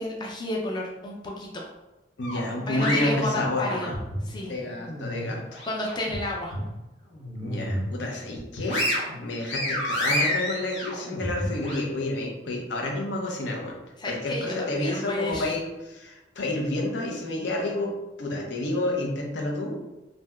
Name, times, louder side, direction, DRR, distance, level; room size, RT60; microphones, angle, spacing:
voice 1, 0.0-1.7 2.7-3.9 4.2-4.5 5.7-6.6 14.0-15.5, left 1 dB, 25° left, -1 dB, 0.4 m, -31 dB
sound 1, 2.2-4.3 4.7-6.2 6.5-6.7 7.1-7.9 8.3-11.8, left 1 dB, 90° left, 0.9 m, -30 dB
voice 2, 2.2-3.9 4.5-5.6 7.4-8.9 9.2-13.8 14.1-17.9 18.2-19.8, left 2 dB, 75° left, 0 dB, 0.6 m, -29 dB
3.3 x 2.7 x 2.2 m, 1.0 s
head